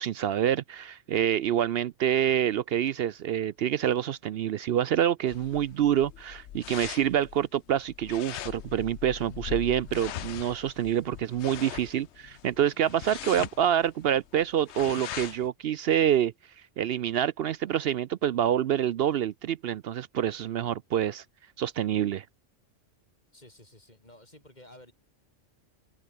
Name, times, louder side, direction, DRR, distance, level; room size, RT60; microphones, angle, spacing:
voice 1, 0.0-16.3 16.8-21.2 21.6-22.3, right 10 dB, 65° right, 0.7 m, -27 dB
sound 1, 5.3-15.5, left 12 dB, 65° left, 0.9 m, -41 dB
voice 2, 23.3-24.9, left 1 dB, 35° left, 5.4 m, -53 dB
omnidirectional pair, 1.3 m